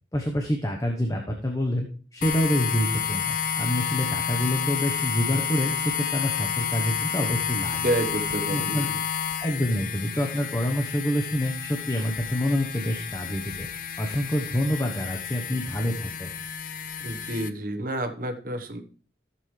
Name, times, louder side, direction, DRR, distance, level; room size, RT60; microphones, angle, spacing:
voice 1, 0.1-1.9 2.1-7.8 8.5-8.9 9.4-13.7 14.0-16.3, equal, 20° left, 2 dB, 1.0 m, -27 dB
sound 1, 2.2-17.5, left 7 dB, 50° left, 0.6 m, -30 dB
voice 2, 7.7-9.0 17.0-18.8, right 1 dB, 50° right, 6 dB, 1.2 m, -29 dB
14.5 x 7.0 x 3.3 m, 0.42 s
head